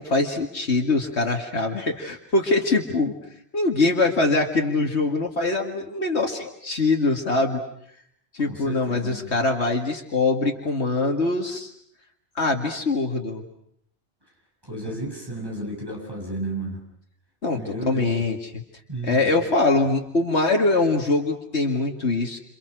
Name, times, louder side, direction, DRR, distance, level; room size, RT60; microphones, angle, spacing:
voice 1, 0.0-3.1 3.5-7.6 8.3-11.7 12.4-13.4 17.4-18.5 19.0-22.4, left 3 dB, 75° left, 2 dB, 2.5 m, -23 dB
voice 2, 8.4-9.3 14.7-16.8 17.5-18.2 18.9-19.3, right 2 dB, 20° right, -1 dB, 6.6 m, -33 dB
29.5 x 28.5 x 6.3 m, 0.71 s
omnidirectional pair, 1.1 m